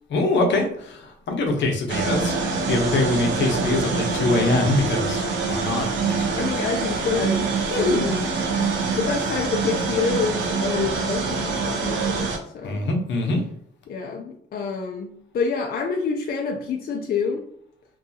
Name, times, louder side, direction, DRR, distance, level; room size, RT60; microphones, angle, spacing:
voice 1, 0.1-2.3 2.7-5.9 7.7-8.0 12.6-13.4, left 2 dB, 65° left, 2 dB, 0.7 m, -23 dB
sound 1, 1.9-12.4, right 4 dB, 70° right, 0.6 m, -25 dB
voice 2, 6.4-8.3 9.0-12.8 13.9-17.4, left 5 dB, 50° left, 2 dB, 0.4 m, -27 dB
2.6 x 2.3 x 2.6 m, 0.69 s
cardioid pair, 90°, 20 cm